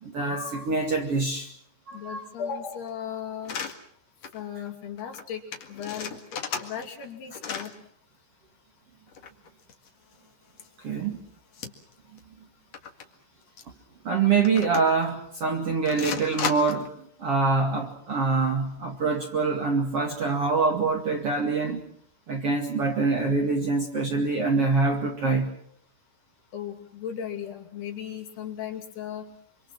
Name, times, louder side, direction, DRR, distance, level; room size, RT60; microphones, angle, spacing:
voice 1, 0.0-1.5 1.9-2.2 10.8-11.2 14.0-21.8 22.3-25.5, right 4 dB, 40° right, 2.4 m, -25 dB
voice 2, 1.9-3.6 4.3-5.4 5.7-7.7 26.5-29.3, left 8 dB, 65° left, 4.5 m, -36 dB
sound 1, 3.4-3.7 4.2-4.4 4.7-4.8 5.0-5.2 5.5-7.1 7.3-7.7 9.1-10.1 10.6-10.7 11.5-11.9 12.2-12.3 12.7-13.0 13.6-13.7 14.4-15.1 15.9-16.9, left 6 dB, 50° left, 2.4 m, -34 dB
26.0 x 26.0 x 6.1 m
omnidirectional pair, 5.2 m